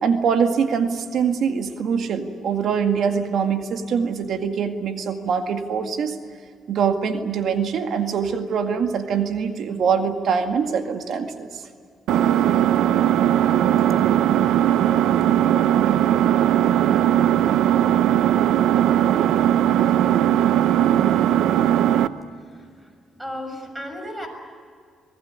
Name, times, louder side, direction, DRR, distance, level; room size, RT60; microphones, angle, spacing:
voice 1, 0.0-6.2 6.7-11.6, right 6 dB, 65° right, 6 dB, 2.0 m, -23 dB
Engine, 12.1-22.1, right 11 dB, 85° right, 0.8 m, -18 dB
voice 2, 22.4-22.9 23.2-24.3, equal, 10° right, 5 dB, 6.4 m, -35 dB
24.5 x 19.5 x 9.7 m, 2.1 s
cardioid pair, 90°, 0 cm